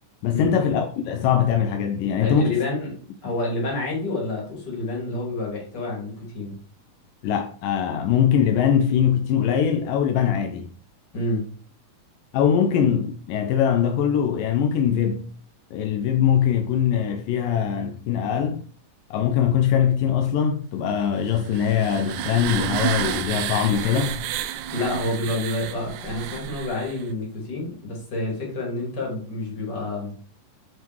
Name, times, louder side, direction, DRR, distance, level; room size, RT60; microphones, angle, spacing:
voice 1, 0.2-2.5 7.2-10.7 12.3-15.3 15.7-18.6 19.1-24.2, left 8 dB, 80° left, 2.3 m, -22 dB
voice 2, 2.2-6.6 11.1-11.5 24.7-30.2, left 2 dB, 30° left, 3.3 m, -28 dB
sound 1, 21.3-27.1, right 11 dB, 80° right, 1.7 m, -30 dB
8.0 x 5.2 x 4.6 m
omnidirectional pair, 3.9 m